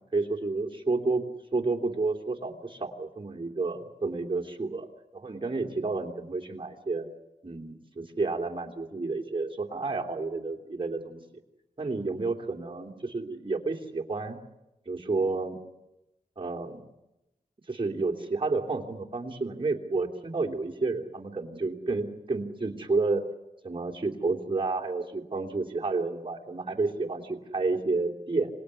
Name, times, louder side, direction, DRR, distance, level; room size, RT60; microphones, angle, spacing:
voice 1, 0.1-1.2 1.5-4.9 5.1-7.1 7.4-11.2 11.8-14.4 14.9-15.6 16.4-16.9 17.7-23.2 23.6-28.5, right 3 dB, 35° right, 1 dB, 3.0 m, -30 dB
26.0 x 19.5 x 9.7 m, 0.94 s
wide cardioid pair, 85°, 14 cm